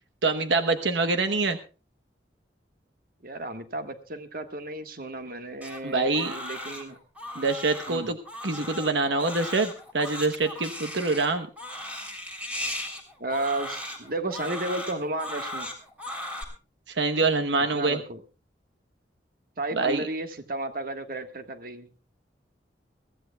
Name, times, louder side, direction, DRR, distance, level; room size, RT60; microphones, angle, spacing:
voice 1, 0.2-1.6 5.8-6.4 7.3-8.2 8.4-11.5 16.9-18.0 19.7-20.0, right 3 dB, 80° right, 7 dB, 1.0 m, -25 dB
voice 2, 3.2-7.0 7.9-8.1 8.6-8.7 13.2-15.7 17.7-18.2 19.6-21.9, right 2 dB, 55° right, 8 dB, 1.4 m, -33 dB
Crying sobbing, 5.6-16.4, left 1 dB, 10° right, 3.3 m, -37 dB
23.0 x 15.0 x 2.3 m, 0.33 s
head